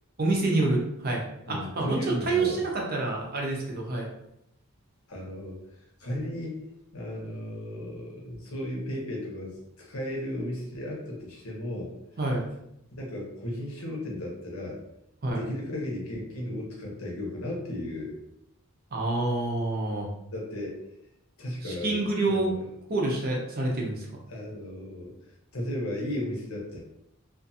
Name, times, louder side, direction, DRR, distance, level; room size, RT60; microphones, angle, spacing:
voice 1, 0.2-4.1 12.2-12.5 15.2-15.4 18.9-20.1 21.6-22.5 22.9-24.1, right 2 dB, 45° right, -1 dB, 0.6 m, -27 dB
voice 2, 1.4-2.6 5.1-5.6 6.0-6.6 6.9-11.9 12.9-14.8 15.3-18.2 20.3-20.8 21.4-22.7 24.3-26.8, left 1 dB, 80° left, -2 dB, 0.9 m, -35 dB
2.5 x 2.4 x 2.6 m, 0.80 s
head